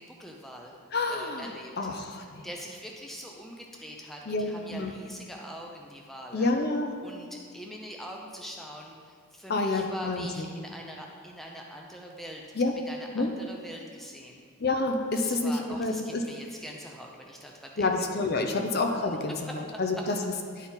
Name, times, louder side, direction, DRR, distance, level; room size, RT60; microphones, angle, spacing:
voice 1, 0.0-0.7 1.1-1.7 2.0-6.5 7.0-14.4 15.1-17.9 18.5-18.6 18.9-19.6 19.9-20.0, equal, ahead, -1 dB, 0.5 m, -43 dB
voice 2, 0.9-1.5 1.8-2.5 4.3-4.9 6.3-7.0 9.5-10.5 12.6-12.7 13.1-13.3 14.6-16.2 17.8-20.2, left 3 dB, 45° left, 3 dB, 0.6 m, -28 dB
11.0 x 4.2 x 4.0 m, 2.1 s
head